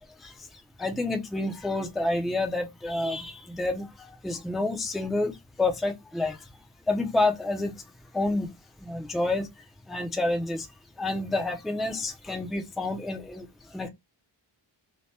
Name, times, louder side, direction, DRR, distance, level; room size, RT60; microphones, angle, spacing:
voice 1, 0.8-5.3 5.6-6.4 6.9-7.7 8.1-8.5 8.8-9.5 9.9-10.7 11.0-13.4 13.7-13.9, left 2 dB, ahead, 0.4 m, -28 dB
2.8 x 2.1 x 3.2 m
wide cardioid pair, 145°, 50 cm